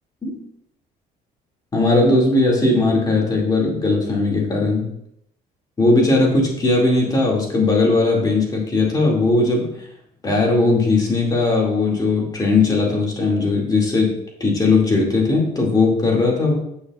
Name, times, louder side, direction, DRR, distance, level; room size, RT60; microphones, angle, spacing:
voice 1, 1.7-4.9 5.8-9.7 10.2-14.1 14.4-16.6, left 3 dB, 25° left, -2 dB, 2.3 m, -18 dB
9.0 x 6.4 x 2.4 m, 0.75 s
cardioid pair, 110°, 17 cm